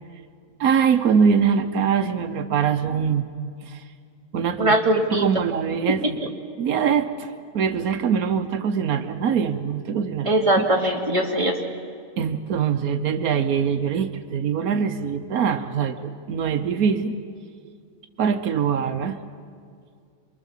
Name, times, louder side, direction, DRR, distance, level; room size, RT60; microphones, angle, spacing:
voice 1, 0.6-3.3 3.7-3.8 4.3-4.7 5.1-6.2 6.6-7.3 7.5-10.3 12.2-17.1 18.2-19.2, right 7 dB, 90° right, 9 dB, 1.4 m, -23 dB
voice 2, 4.6-5.4 10.3-11.6, right 1 dB, 20° right, 0 dB, 2.5 m, -21 dB
27.5 x 23.5 x 7.4 m, 2.2 s
omnidirectional pair, 1.5 m